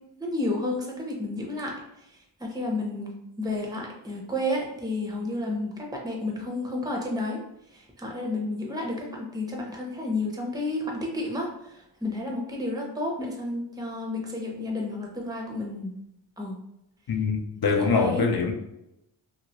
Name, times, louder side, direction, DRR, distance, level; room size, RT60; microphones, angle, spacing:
voice 1, 0.2-1.7 2.4-3.1 3.4-7.4 7.7-15.9 16.4-16.6 17.5-18.2, left 2 dB, 10° right, 0.7 m, -31 dB
voice 2, 17.1-18.5, left 4 dB, 50° left, 0.6 m, -24 dB
2.9 x 2.6 x 2.9 m
wide cardioid pair, 75°, 48 cm